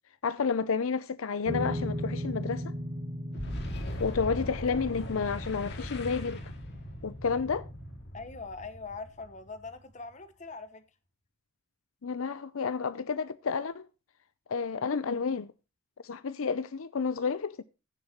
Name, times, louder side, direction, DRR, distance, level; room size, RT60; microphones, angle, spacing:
voice 1, 0.2-2.7 4.0-6.4 7.0-7.7 12.0-13.9 14.5-15.5 16.0-17.6, left 5 dB, 75° left, 0.6 m, -30 dB
sound 1, 1.5-8.0, equal, 50° right, 2.4 m, -38 dB
Boom, 3.3-9.9, equal, 55° left, 2.2 m, -40 dB
voice 2, 8.1-10.8, left 4 dB, 35° left, 1.1 m, -42 dB
16.0 x 7.2 x 2.9 m
head